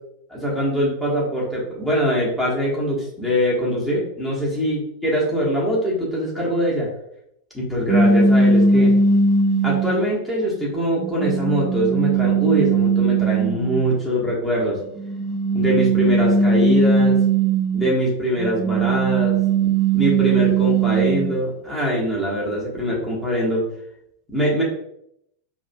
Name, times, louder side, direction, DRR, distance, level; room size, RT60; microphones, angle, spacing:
voice 1, 0.3-6.9 7.5-8.9 9.6-14.8 15.5-17.2 17.7-23.7 24.3-24.6, equal, 5° left, -5 dB, 1.3 m, -23 dB
sound 1, 7.9-10.1 10.7-13.8 15.0-17.9 18.4-21.4, right 4 dB, 15° right, 0.3 m, -19 dB
5.1 x 2.6 x 2.2 m, 0.75 s
figure-of-eight pair, 90°, 0 cm